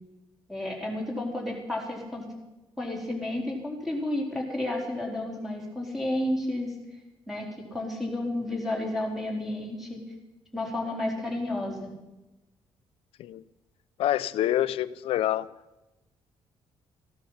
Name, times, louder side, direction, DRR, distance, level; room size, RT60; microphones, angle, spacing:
voice 1, 0.5-2.2 2.8-6.7 7.3-7.5 7.7-10.0 10.5-11.9, left 1 dB, ahead, -2 dB, 4.3 m, -31 dB
voice 2, 14.0-15.5, left 12 dB, 75° left, 16 dB, 0.6 m, -26 dB
15.5 x 12.0 x 5.8 m, 1.0 s
cardioid pair, 130°, 10 cm